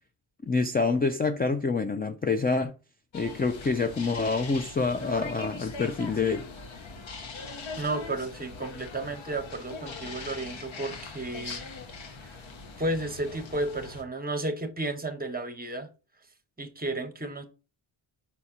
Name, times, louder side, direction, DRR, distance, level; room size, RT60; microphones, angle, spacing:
voice 1, 0.4-2.7 3.1-6.5, left 4 dB, 20° left, 0.3 m, -27 dB
sound 1, 3.1-14.0, left 4 dB, 65° left, 1.3 m, -41 dB
voice 2, 7.8-11.7 12.2-12.4 12.8-15.9 16.6-17.4, right 2 dB, 20° right, 0.9 m, -33 dB
5.8 x 4.2 x 6.0 m
wide cardioid pair, 160°, 50 cm